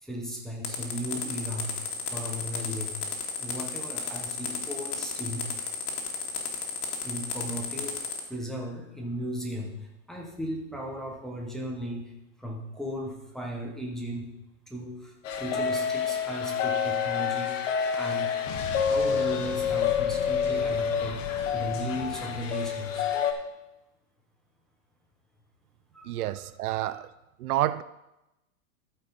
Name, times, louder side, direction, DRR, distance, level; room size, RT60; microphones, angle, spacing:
voice 1, 0.0-1.7 2.1-3.0 3.4-5.5 7.0-8.0 8.3-12.0 12.4-14.3 14.7-17.6 17.9-18.3 18.7-23.1 25.9-26.4 26.7-27.0, equal, ahead, 0.6 m, -36 dB
sound 1, 0.6-8.2, left 6 dB, 75° left, 2.2 m, -33 dB
sound 2, 15.2-23.3, left 7 dB, 60° left, 1.3 m, -28 dB
Explosion, 18.5-23.2, left 5 dB, 35° left, 1.2 m, -40 dB
voice 2, 26.1-27.1 27.4-27.8, right 14 dB, 80° right, 0.6 m, -29 dB
13.5 x 4.7 x 5.1 m
supercardioid pair, 160°, 44 cm